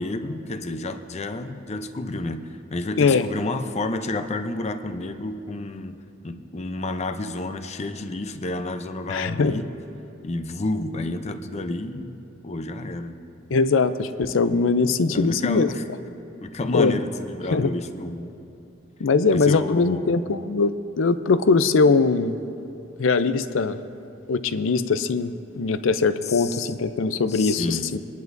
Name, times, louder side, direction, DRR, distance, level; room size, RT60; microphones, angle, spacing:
voice 1, 0.0-6.0 6.2-9.7 10.2-13.2 15.1-15.8 16.4-18.3 19.3-20.2 26.2-26.7 27.3-27.9, left 2 dB, 35° left, 8 dB, 0.6 m, -30 dB
voice 2, 9.1-9.6 13.5-15.7 16.7-17.0 17.5-17.7 19.0-22.4 23.0-23.8 24.3-28.0, left 4 dB, 75° left, 12 dB, 0.5 m, -21 dB
25.0 x 10.5 x 2.6 m, 2.8 s
head